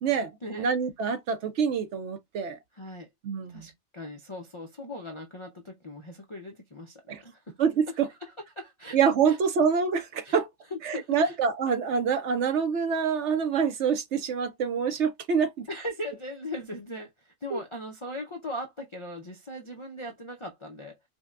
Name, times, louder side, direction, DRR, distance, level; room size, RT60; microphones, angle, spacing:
voice 1, 0.1-0.7 2.7-3.1 3.5-7.6 8.1-9.0 9.3-9.4 10.2-10.4 10.7-11.4 15.7-20.9, left 1 dB, 45° left, 0.4 m, -39 dB
voice 2, 0.6-2.6 3.2-3.7 7.1-7.2 7.6-8.1 8.9-10.5 10.8-15.7 17.5-17.6, right 6 dB, 65° right, 0.9 m, -26 dB
5.1 x 2.2 x 2.4 m
omnidirectional pair, 1.4 m